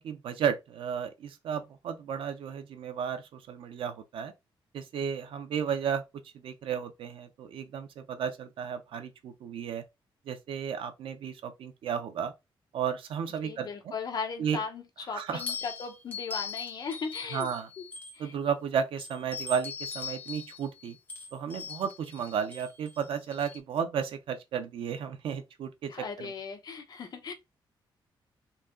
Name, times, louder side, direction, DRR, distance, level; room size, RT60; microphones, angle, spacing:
voice 1, 0.0-4.3 4.7-6.0 6.4-9.8 10.3-12.3 12.7-13.9 14.4-14.6 15.1-15.4 17.3-17.7 18.2-21.0 21.3-25.9 26.2-26.3, right 7 dB, 80° right, 0.8 m, -33 dB
voice 2, 13.4-17.5 17.8-17.9 18.1-18.3 25.9-27.3, left 5 dB, 50° left, 0.9 m, -37 dB
sound 1, 15.4-18.5 19.0-23.6, left 5 dB, 20° left, 1.3 m, -41 dB
4.1 x 2.9 x 3.7 m
wide cardioid pair, 165°, 9 cm